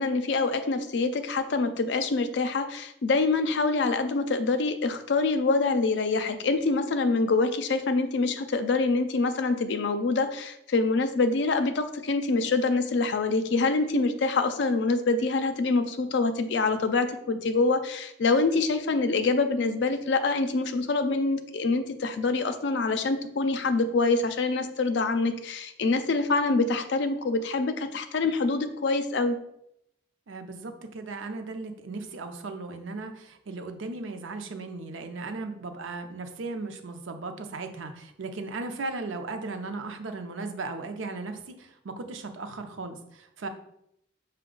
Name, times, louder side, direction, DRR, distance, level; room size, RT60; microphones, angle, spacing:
voice 1, 0.0-29.4, left 3 dB, 60° left, 9 dB, 0.4 m, -25 dB
voice 2, 30.3-43.5, right 3 dB, 85° right, 6 dB, 0.5 m, -37 dB
5.9 x 2.2 x 3.7 m, 0.78 s
head